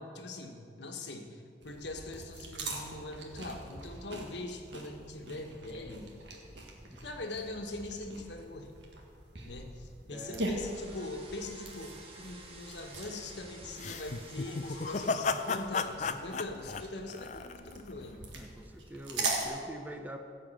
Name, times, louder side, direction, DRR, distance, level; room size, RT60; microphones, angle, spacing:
voice 1, 0.0-6.1 7.0-8.7 9.4-18.2, left 2 dB, 75° left, 3 dB, 1.3 m, -42 dB
sound 1, 1.6-19.5, right 2 dB, 85° right, 1.8 m, -42 dB
voice 2, 10.1-10.4 18.3-20.2, right 1 dB, 10° right, 5 dB, 0.7 m, -45 dB
sound 2, 10.5-18.7, right 2 dB, 30° right, 1.5 m, -54 dB
sound 3, 13.8-17.9, left 4 dB, 40° left, 0.5 m, -34 dB
15.5 x 5.3 x 7.6 m, 2.4 s
head